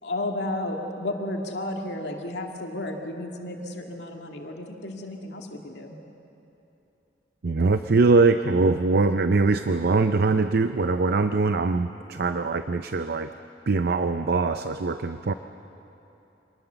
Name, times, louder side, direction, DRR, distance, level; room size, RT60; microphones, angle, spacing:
voice 1, 0.0-6.0, left 1 dB, 75° left, 2 dB, 2.2 m, -32 dB
voice 2, 7.4-13.3 13.7-15.3, right 3 dB, 60° right, 9 dB, 0.6 m, -22 dB
26.0 x 19.5 x 6.9 m, 3.0 s
head